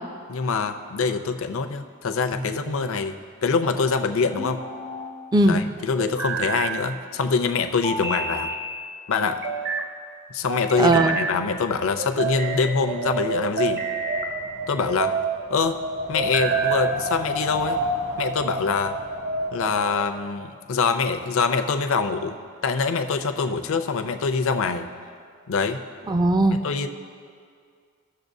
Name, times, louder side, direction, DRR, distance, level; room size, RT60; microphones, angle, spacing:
voice 1, 0.3-4.6 5.4-8.5 9.1-9.4 10.3-13.8 14.7-15.1 15.5-15.8 16.1-17.8 18.2-19.0 19.5-22.4 22.6-24.9 25.5-25.8 26.6-26.9, left 5 dB, 65° left, 8 dB, 0.5 m, -24 dB
sound 1, 2.3-3.0 4.4-5.1 6.0-6.8 7.8-8.6 9.2-9.9 10.5-11.4 12.0-12.6 13.4-14.3 14.9-15.4 16.1-17.0, right 4 dB, 50° right, 0.8 m, -28 dB
voice 2, 10.8-11.2 26.1-26.6, right 2 dB, 20° right, 7 dB, 0.4 m, -18 dB
Wind, 11.2-20.1, right 1 dB, 85° right, 1.8 m, -31 dB
17.0 x 6.8 x 2.7 m, 2.2 s
head